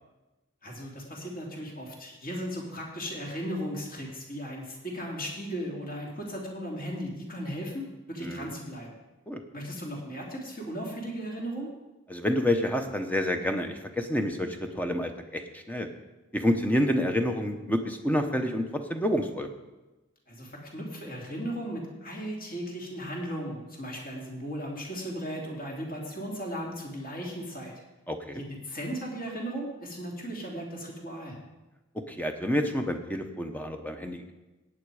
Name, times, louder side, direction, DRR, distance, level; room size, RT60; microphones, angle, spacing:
voice 1, 0.6-8.9 9.5-11.7 20.3-27.7 28.3-31.4, equal, 40° left, -1 dB, 3.0 m, -36 dB
voice 2, 8.2-8.5 9.3-9.4 12.1-15.9 16.3-18.6 18.9-19.5 28.1-28.4 32.1-34.3, left 1 dB, 5° left, 5 dB, 0.9 m, -28 dB
16.0 x 9.2 x 4.9 m, 1.1 s
head